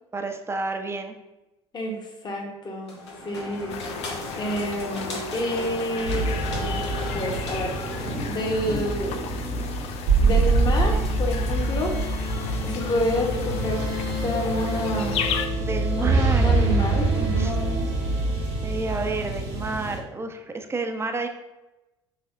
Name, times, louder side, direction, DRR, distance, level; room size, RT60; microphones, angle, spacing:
voice 1, 0.1-1.1 15.6-16.6 17.4-17.5 18.6-21.3, right 3 dB, 20° right, 5 dB, 0.6 m, -30 dB
voice 2, 2.2-3.0 3.2-3.8 4.3-6.8 7.1-7.8 8.3-9.2 10.2-12.0 12.6-13.9 14.2-15.3 16.0-17.9, equal, 30° left, 0 dB, 1.1 m, -29 dB
sound 1, 2.9-8.4, left 1 dB, 80° left, 0.9 m, -35 dB
sound 2, 3.7-15.5, left 8 dB, 50° left, 0.4 m, -36 dB
sound 3, 6.0-20.0, right 2 dB, 55° right, 1.0 m, -25 dB
5.5 x 3.4 x 2.5 m, 1.0 s
figure-of-eight pair, 60°, 14 cm